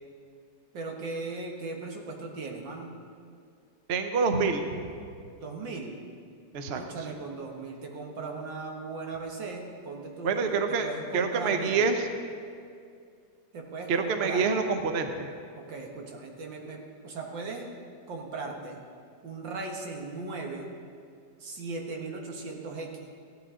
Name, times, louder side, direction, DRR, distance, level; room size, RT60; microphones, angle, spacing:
voice 1, 0.7-2.9 5.4-6.0 6.7-11.8 13.5-14.5 15.6-17.7 18.1-18.8 19.2-20.7 21.4-22.9, right 3 dB, 90° right, 1 dB, 2.1 m, -38 dB
voice 2, 3.9-4.8 6.5-6.8 7.1-7.2 10.2-10.9 11.1-12.1 13.9-15.3, right 5 dB, 50° right, 6 dB, 0.8 m, -26 dB
16.0 x 11.0 x 3.7 m, 2.3 s
omnidirectional pair, 2.0 m